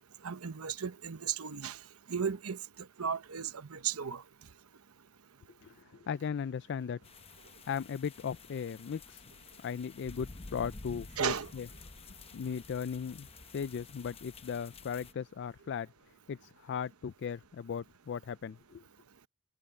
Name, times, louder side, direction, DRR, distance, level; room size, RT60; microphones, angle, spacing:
voice 1, 0.2-1.8 2.1-2.6 3.0-4.2 11.2-11.5, right 7 dB, 85° right, 0.9 m, -35 dB
voice 2, 5.6-7.0 7.7-9.3 9.6-11.7 12.3-13.3 13.5-15.9 16.3-18.8, left 7 dB, 55° left, 0.3 m, -37 dB
sound 1, 7.0-15.1, left 3 dB, 25° left, 0.8 m, -51 dB
head